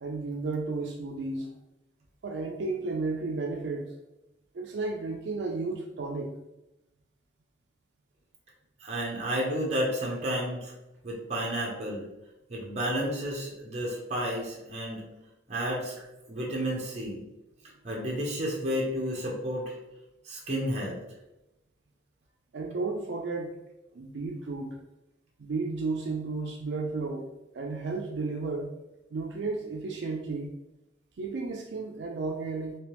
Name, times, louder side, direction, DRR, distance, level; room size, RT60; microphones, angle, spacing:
voice 1, 0.0-1.5 2.2-3.9 4.5-6.3 22.5-23.5 23.9-24.8 25.4-27.2 27.5-28.7 29.1-30.5 31.2-32.8, right 3 dB, 80° right, 0 dB, 0.4 m, -33 dB
voice 2, 8.8-10.7 11.0-12.1 12.5-15.0 15.5-16.0 16.3-17.2 17.8-19.7 20.3-21.0, equal, 40° right, -3 dB, 0.8 m, -31 dB
3.3 x 2.9 x 3.0 m, 0.94 s
head